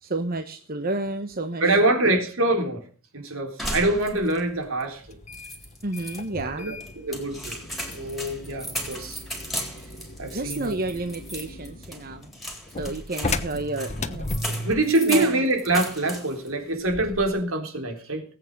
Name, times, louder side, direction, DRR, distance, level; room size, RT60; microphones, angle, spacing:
voice 1, 0.0-1.8 2.0-2.2 5.8-6.8 10.3-12.3 12.8-14.3 15.1-15.4, right 2 dB, 45° right, 1.1 m, -30 dB
voice 2, 1.6-2.8 3.1-5.2 6.4-7.6 7.9-9.2 9.5-9.7 10.2-10.8 14.6-18.2, right 2 dB, 70° right, 3.6 m, -25 dB
sound 1, 3.6-4.5 4.8-4.9 5.3-6.2 6.8-16.5 16.8-17.4, equal, ahead, 3.9 m, -36 dB
sound 2, 5.0-14.9, left 2 dB, 30° left, 1.1 m, -36 dB
19.5 x 8.8 x 5.3 m
head